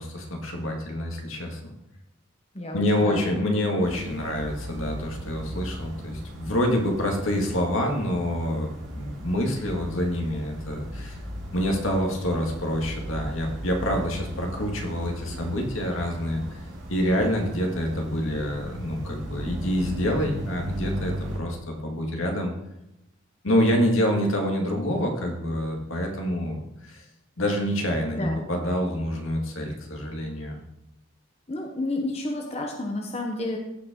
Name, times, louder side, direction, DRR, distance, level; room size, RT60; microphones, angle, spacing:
voice 1, 0.0-1.7 2.7-11.2 11.5-16.6 16.9-22.5 23.4-27.0 27.4-30.6, equal, 80° left, 1 dB, 2.1 m, -27 dB
voice 2, 2.5-3.2 28.2-28.4 31.5-33.6, left 1 dB, 30° left, 1 dB, 1.1 m, -30 dB
sound 1, 3.8-21.4, equal, 75° right, 3.3 m, -37 dB
15.5 x 5.6 x 3.8 m, 0.88 s
head